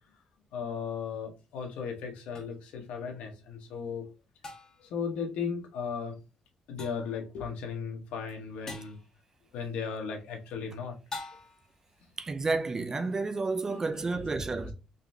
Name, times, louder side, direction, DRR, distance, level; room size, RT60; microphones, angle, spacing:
voice 1, 0.5-4.1 4.8-6.2 6.7-9.0 9.5-11.0 13.7-14.3 14.6-14.7, left 6 dB, 85° left, 1.1 m, -36 dB
sound 1, 2.4-2.5 4.4-4.9 6.8-7.2 8.7-9.0 11.1-11.7, left 2 dB, 30° left, 1.2 m, -43 dB
voice 2, 12.2-14.7, right 3 dB, 25° right, 0.4 m, -31 dB
4.0 x 3.2 x 2.7 m
cardioid pair, 115°, 2 cm